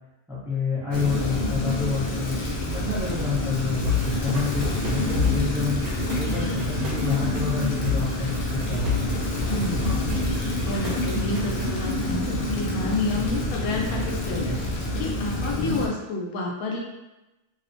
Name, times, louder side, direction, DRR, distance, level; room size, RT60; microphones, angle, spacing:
voice 1, 0.3-2.4 2.7-5.8 6.2-9.1, left 5 dB, ahead, -10 dB, 0.6 m, -28 dB
Rain, 0.9-15.9, left 1 dB, 65° left, 0.5 m, -27 dB
sound 1, 3.8-11.8, left 5 dB, 85° right, 1.1 m, -31 dB
voice 2, 9.5-9.8 10.6-14.6 15.0-16.8, left 2 dB, 85° left, -2 dB, 1.0 m, -29 dB
2.9 x 2.0 x 2.6 m, 1.0 s
omnidirectional pair, 1.5 m